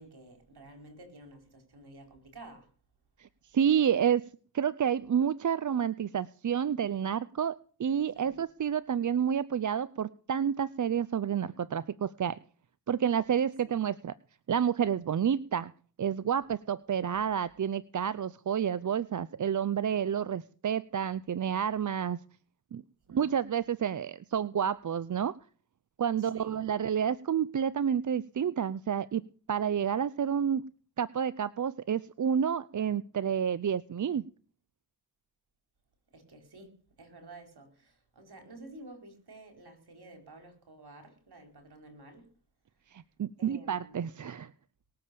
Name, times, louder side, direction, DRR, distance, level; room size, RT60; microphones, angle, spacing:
voice 1, 0.0-2.7 8.1-8.4 13.6-13.8 23.1-23.3 26.2-26.6 36.1-42.3 43.4-44.1, right 2 dB, 60° right, 4.6 m, -51 dB
voice 2, 3.5-4.3 4.5-12.4 12.9-14.1 14.5-15.7 16.0-22.2 22.7-22.8 23.1-25.4 26.0-29.2 29.5-30.7 31.0-34.3 42.9-44.5, right 8 dB, 45° right, 0.6 m, -29 dB
20.0 x 7.5 x 6.9 m
cardioid pair, 45°, 43 cm